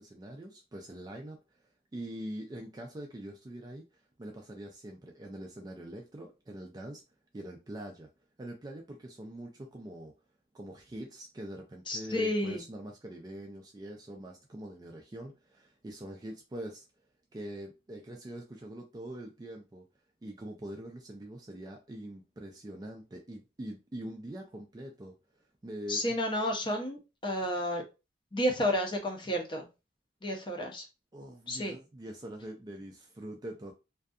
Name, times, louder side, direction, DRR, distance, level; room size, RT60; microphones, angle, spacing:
voice 1, 0.0-1.6 1.9-3.9 4.2-7.0 7.3-8.1 8.4-10.1 10.5-16.8 17.3-19.9 20.2-26.2 31.1-33.7, right 1 dB, 20° right, 0.3 m, -43 dB
voice 2, 11.9-12.6 25.9-27.8 28.3-29.7 30.2-30.8 31.5-31.7, equal, 25° left, 0.6 m, -31 dB
2.6 x 2.3 x 2.3 m
head